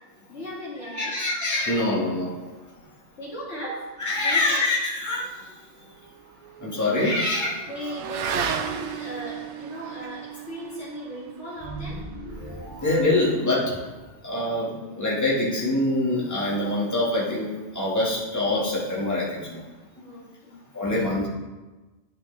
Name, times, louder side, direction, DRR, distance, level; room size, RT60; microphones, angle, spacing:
voice 1, 0.3-1.2 3.2-3.9 4.2-4.6 7.7-12.0 20.0-20.6, equal, 80° left, -6 dB, 2.4 m, -37 dB
voice 2, 0.9-2.3 4.0-5.3 6.6-7.6 12.8-13.8 14.2-17.5 17.7-19.6 20.7-21.3, left 2 dB, 15° left, -6 dB, 1.5 m, -24 dB
Motorcycle / Accelerating revving vroom, 5.3-14.1, right 7 dB, 85° right, 0.9 m, -36 dB
sound 1, 11.5-14.1, right 1 dB, 45° left, 1.4 m, -39 dB
10.0 x 4.9 x 3.3 m, 1.2 s
omnidirectional pair, 1.2 m